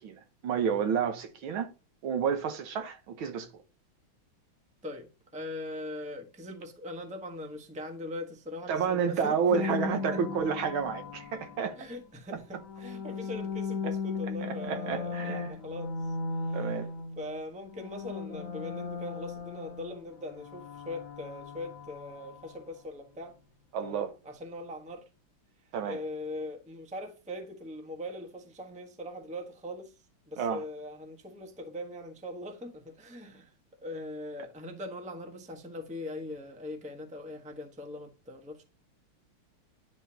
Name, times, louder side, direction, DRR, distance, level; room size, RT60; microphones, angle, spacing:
voice 1, 0.0-1.7 2.0-3.5 8.7-11.8 12.3-12.4 13.8-13.9 14.4-15.5 16.5-16.9 23.7-24.1 25.7-26.0 30.4-30.6, right 7 dB, 75° right, 1.8 m, -30 dB
voice 2, 4.8-10.2 11.8-16.2 16.4-16.7 17.2-23.4 23.8-25.0 25.8-30.0 30.3-33.5 33.8-38.6, left 1 dB, 5° right, 0.8 m, -41 dB
sound 1, 9.5-11.9 12.5-17.4 17.7-22.6, left 4 dB, 40° left, 1.9 m, -37 dB
10.5 x 4.2 x 2.8 m
omnidirectional pair, 2.3 m